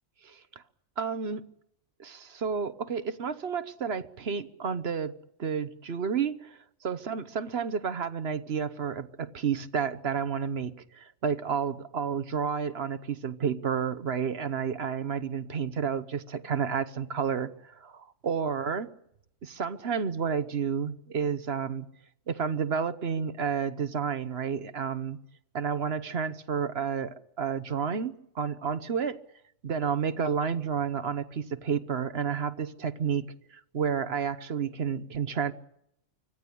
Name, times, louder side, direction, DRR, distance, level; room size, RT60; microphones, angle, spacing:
voice 1, 1.0-1.4 2.0-5.1 5.4-18.9 19.4-21.9 22.3-25.2 25.5-29.2 29.6-33.3 33.5-35.5, right 6 dB, 55° right, 1.2 m, -31 dB
25.0 x 16.5 x 8.5 m
omnidirectional pair, 1.3 m